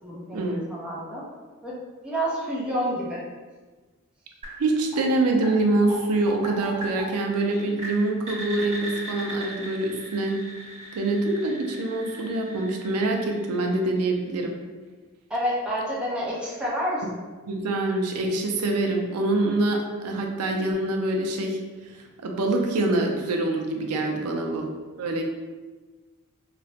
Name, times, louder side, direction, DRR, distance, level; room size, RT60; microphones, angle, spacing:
voice 1, 0.0-1.3 1.6-1.7 2.0-3.2 15.3-17.2 24.3-24.6, equal, 5° right, -7 dB, 0.6 m, -29 dB
sound 1, 4.4-14.2, equal, 30° right, 0.9 m, -39 dB
voice 2, 4.6-10.4 10.9-14.5 17.5-21.6 21.9-24.7 25.0-25.2, right 2 dB, 80° right, 2 dB, 0.4 m, -25 dB
2.9 x 2.1 x 2.7 m, 1.3 s
head